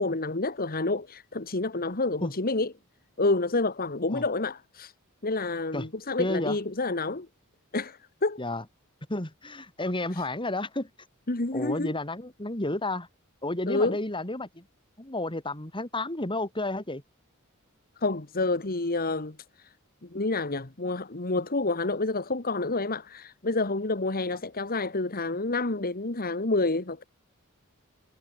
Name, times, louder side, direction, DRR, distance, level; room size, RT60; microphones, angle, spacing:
voice 1, 0.0-2.7 3.2-4.9 5.2-7.3 7.7-8.4 10.1-10.2 11.3-12.0 13.7-14.0 18.0-19.7 20.0-27.0, left 2 dB, 45° left, 1.7 m, -28 dB
voice 2, 6.2-6.6 8.4-8.6 9.1-10.9 11.5-13.1 13.4-14.7 15.0-17.0, left 2 dB, 25° left, 3.8 m, -31 dB
head